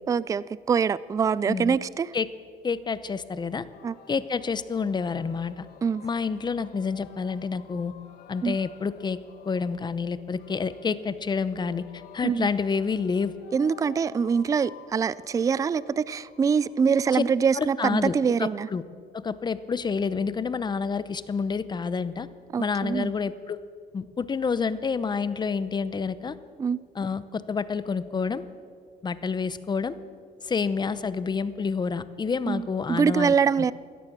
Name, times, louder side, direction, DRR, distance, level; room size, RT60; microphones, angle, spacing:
voice 1, 0.1-2.1 3.8-3.9 5.8-6.0 8.4-8.6 12.2-12.5 13.5-18.7 22.5-23.1 26.6-26.8 32.5-33.7, right 6 dB, 20° right, 0.3 m, -24 dB
voice 2, 2.6-3.7 4.1-5.7 6.0-7.9 8.3-9.2 9.5-13.3 17.1-17.2 17.5-18.1 18.4-18.8 19.1-22.3 22.6-23.6 23.9-26.4 27.0-28.4 29.0-29.9 30.4-33.3, left 5 dB, 25° left, 0.7 m, -28 dB
Singing, 3.3-17.0, left 6 dB, 65° left, 1.5 m, -52 dB
17.0 x 13.5 x 6.1 m
cardioid pair, 110°, 17 cm